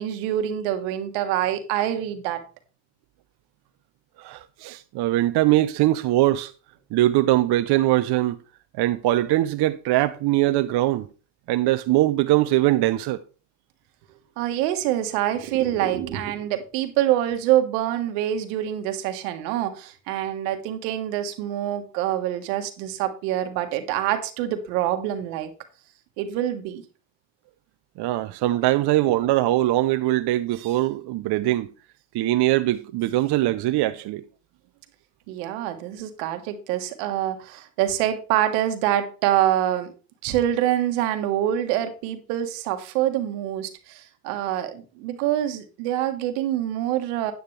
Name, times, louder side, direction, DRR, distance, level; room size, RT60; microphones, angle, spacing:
voice 1, 0.0-2.4 14.4-25.5 26.2-26.8 35.3-39.9 40.2-47.3, right 12 dB, 80° right, 1.4 m, -25 dB
voice 2, 4.2-6.5 6.9-8.4 8.8-11.1 11.5-13.2 28.0-31.7 32.1-34.2, right 16 dB, 55° right, 0.7 m, -21 dB
9.3 x 8.9 x 3.2 m
supercardioid pair, 80°, 48 cm